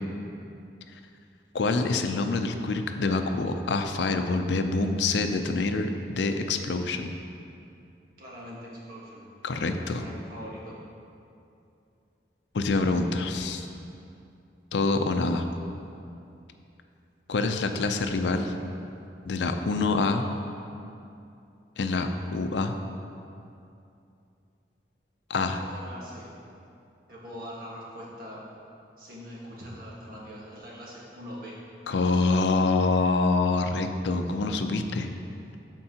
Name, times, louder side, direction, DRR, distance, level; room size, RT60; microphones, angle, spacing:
voice 1, 1.5-7.1 9.4-10.0 12.5-13.6 14.7-15.4 17.3-18.5 19.3-20.3 21.8-22.7 25.3-25.6 31.9-35.1, left 3 dB, 80° left, 7 dB, 0.5 m, -26 dB
voice 2, 8.2-8.6 8.9-9.2 9.5-10.7 25.6-26.3 27.1-28.4 29.0-31.6, equal, 55° right, -5 dB, 1.5 m, -42 dB
13.0 x 4.5 x 2.9 m, 2.6 s
head